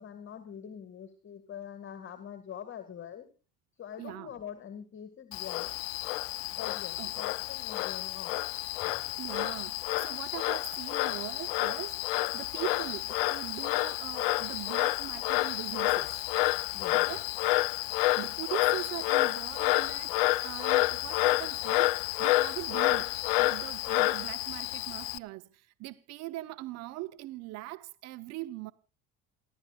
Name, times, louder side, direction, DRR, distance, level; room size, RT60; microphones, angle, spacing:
voice 1, 0.0-3.3 3.8-5.7 6.5-8.4 8.8-9.0 16.7-17.1, left 9 dB, 45° left, 2.0 m, -44 dB
voice 2, 4.0-4.3 7.0-7.1 9.2-16.2 17.0-17.3 18.1-28.7, right 18 dB, 60° right, 0.8 m, -41 dB
Frog, 5.3-25.2, left 20 dB, 80° left, 0.6 m, -29 dB
28.5 x 12.0 x 2.4 m
hypercardioid pair, 70°, 29 cm